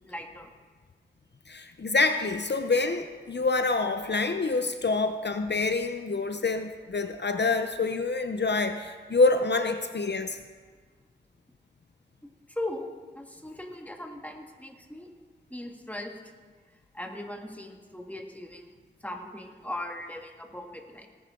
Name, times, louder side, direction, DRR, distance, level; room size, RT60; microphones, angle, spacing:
voice 1, 0.1-0.5 12.5-12.9 13.1-15.1 15.5-16.1 16.9-18.6 19.0-21.1, left 1 dB, 10° left, 2 dB, 1.7 m, -38 dB
voice 2, 1.5-10.4, left 3 dB, 65° left, 8 dB, 0.7 m, -26 dB
18.0 x 11.0 x 3.7 m, 1.5 s
wide cardioid pair, 45°, 19 cm